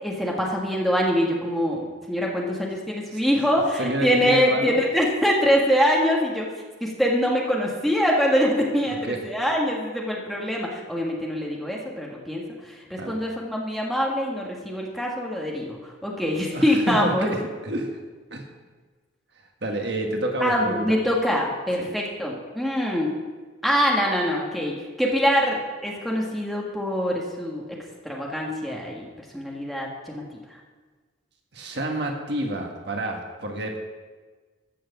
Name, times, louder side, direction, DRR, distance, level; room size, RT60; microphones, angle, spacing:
voice 1, 0.0-6.4 6.8-17.3 20.4-23.1 23.6-27.6 28.0-29.1 29.3-30.2, equal, ahead, -3 dB, 1.6 m, -24 dB
voice 2, 3.8-4.7 8.9-9.2 13.0-13.2 16.5-18.0 18.3-18.4 19.6-21.0 21.8-21.9 31.5-33.8, right 1 dB, 60° right, 2 dB, 1.6 m, -29 dB
14.0 x 6.2 x 7.1 m, 1.4 s
head